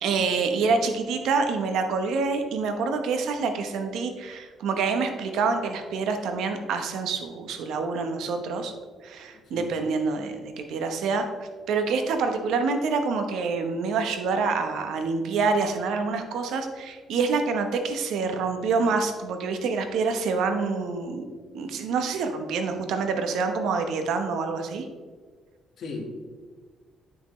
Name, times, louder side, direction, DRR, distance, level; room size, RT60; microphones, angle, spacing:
voice 1, 0.0-8.7 9.0-21.3 21.5-24.9, right 4 dB, 80° right, 6 dB, 1.0 m, -27 dB
voice 2, 9.3-9.7 25.8-26.0, left 4 dB, 60° left, 1 dB, 1.6 m, -38 dB
9.9 x 5.9 x 3.1 m, 1.5 s
cardioid pair, 120°, 0 cm